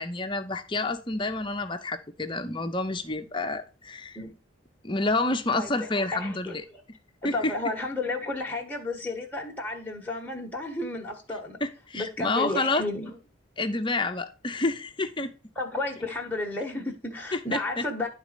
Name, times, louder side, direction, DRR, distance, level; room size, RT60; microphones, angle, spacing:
voice 1, 0.0-4.2 4.8-6.6 7.2-7.5 11.6-12.8 13.6-15.3 17.3-17.8, left 2 dB, 25° left, 0.7 m, -29 dB
voice 2, 5.5-6.5 7.2-11.6 11.9-13.2 15.5-18.1, left 2 dB, 10° left, 1.3 m, -32 dB
11.0 x 4.1 x 5.0 m
head